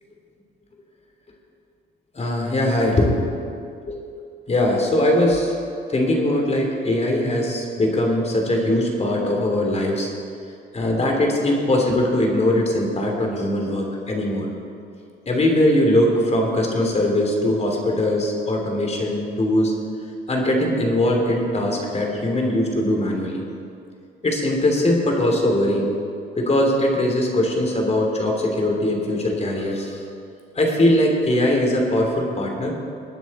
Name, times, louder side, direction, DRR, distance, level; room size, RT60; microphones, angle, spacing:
voice 1, 2.1-3.1 3.9-4.0 4.5-5.6 5.9-10.1 10.7-14.5 15.3-19.7 20.3-23.4 24.2-25.9 26.4-30.0 30.5-32.7, left 1 dB, 35° left, 1 dB, 2.8 m, -21 dB
20.0 x 9.3 x 4.2 m, 2.5 s
cardioid pair, 90°, 20 cm